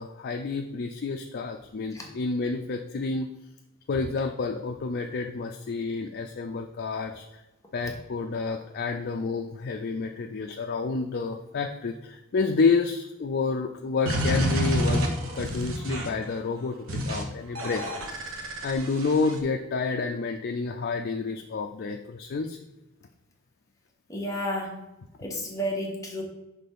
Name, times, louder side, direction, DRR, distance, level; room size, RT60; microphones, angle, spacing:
voice 1, 0.0-3.3 3.9-7.2 7.7-17.8 18.6-22.6, left 4 dB, 50° left, 3 dB, 0.4 m, -29 dB
sound 1, 14.1-16.2 16.9-17.2 17.6-19.4, equal, 70° right, 1.0 m, -28 dB
voice 2, 24.1-24.8 25.2-26.2, equal, 15° left, -1 dB, 1.1 m, -32 dB
5.9 x 3.3 x 5.4 m, 0.96 s
head